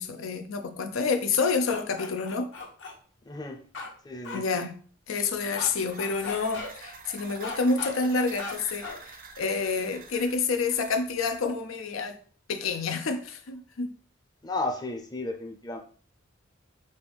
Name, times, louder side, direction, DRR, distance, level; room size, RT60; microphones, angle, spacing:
voice 1, 0.0-2.5 4.3-4.7 5.1-12.2 12.5-13.9, left 4 dB, 85° left, 0.5 m, -28 dB
sound 1, 1.4-2.9 3.7-3.9 4.2-4.4 5.5-5.7 6.0-6.7 7.4-7.9 8.4-8.5 8.8-9.0, left 4 dB, 65° left, 0.9 m, -37 dB
voice 2, 3.2-3.6 4.0-4.4 14.4-15.8, left 2 dB, 20° left, 0.6 m, -33 dB
sound 2, 5.2-11.4, right 4 dB, 45° right, 0.5 m, -47 dB
5.3 x 2.6 x 3.4 m
head